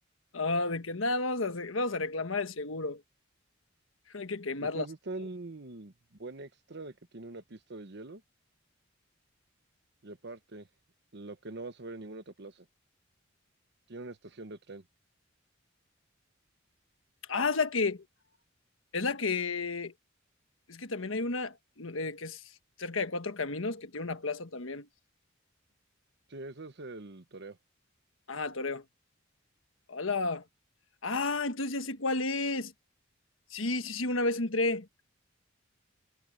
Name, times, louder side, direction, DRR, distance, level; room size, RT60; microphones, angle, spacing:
voice 1, 0.3-3.0 4.1-4.9 5.2-5.3 17.3-18.0 18.9-19.9 20.7-22.4 22.8-24.9 28.3-28.8 29.9-30.4 31.0-32.7 33.5-34.9, left 3 dB, 85° left, 1.4 m, -32 dB
voice 2, 4.6-5.9 6.2-8.2 10.0-10.7 11.1-12.7 13.9-14.8 26.3-27.6, right 2 dB, 60° right, 1.2 m, -43 dB
head